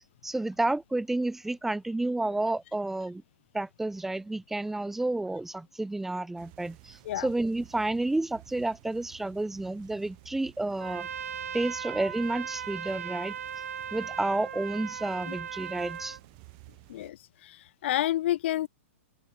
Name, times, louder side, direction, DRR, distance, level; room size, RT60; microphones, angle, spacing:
voice 1, 0.2-3.2 3.5-11.1 11.5-13.4 13.9-16.2, right 2 dB, 5° right, 1.2 m, -30 dB
sound 1, 6.4-17.1, right 34 dB, 40° right, 6.6 m, -54 dB
Trumpet, 10.8-16.2, right 8 dB, 85° right, 2.2 m, -38 dB
voice 2, 16.9-18.7, left 13 dB, 55° left, 0.7 m, -30 dB
open air
hypercardioid pair, 150°, 7 cm